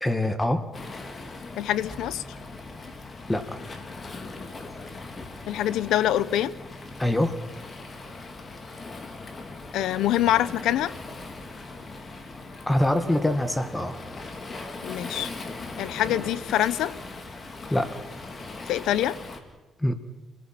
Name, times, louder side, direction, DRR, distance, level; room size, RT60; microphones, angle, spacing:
voice 1, 0.0-0.6 3.3-3.6 7.0-7.3 12.7-14.0 17.7-17.9 19.8-19.9, left 1 dB, 10° left, 10 dB, 1.6 m, -24 dB
Waves surf, 0.7-19.4, left 3 dB, 35° left, 3.0 m, -40 dB
voice 2, 1.6-2.2 5.5-6.5 9.7-10.9 14.8-15.3 15.8-16.9 18.7-19.2, left 12 dB, 85° left, 17 dB, 0.8 m, -25 dB
29.5 x 19.0 x 5.9 m, 1.2 s
cardioid pair, 90°, 0 cm